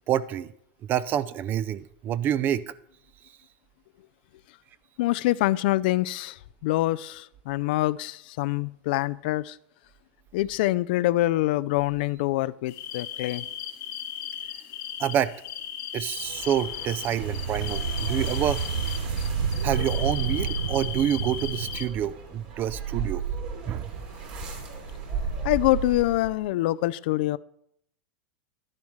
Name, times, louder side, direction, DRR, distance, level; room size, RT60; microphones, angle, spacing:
voice 1, 0.1-0.5 0.9-2.7 15.0-15.3 15.9-18.6 19.6-23.2 23.7-23.9, right 10 dB, 35° right, 17 dB, 0.5 m, -27 dB
voice 2, 5.0-9.6 10.3-13.5 25.4-27.4, left 17 dB, 65° left, 18 dB, 0.4 m, -25 dB
sound 1, 12.7-21.9, left 10 dB, 50° left, 1.1 m, -37 dB
sound 2, 16.1-26.5, right 5 dB, 65° right, 3.1 m, -37 dB
sound 3, 17.2-22.1, right 6 dB, 80° right, 0.7 m, -29 dB
12.0 x 10.5 x 3.1 m, 0.73 s
hypercardioid pair, 115°, 6 cm